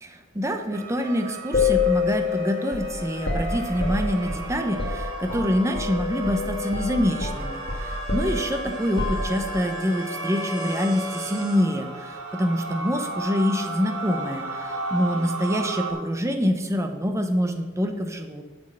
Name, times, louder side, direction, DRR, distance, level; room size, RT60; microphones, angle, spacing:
voice 1, 0.0-18.4, equal, 15° right, 5 dB, 0.8 m, -26 dB
sound 1, 0.7-15.9, right 1 dB, 85° right, 3.6 m, -34 dB
sound 2, 1.5-6.0 6.2-6.5 6.7-9.7, left 4 dB, 55° left, 1.7 m, -27 dB
7.4 x 6.3 x 7.8 m, 1.2 s
head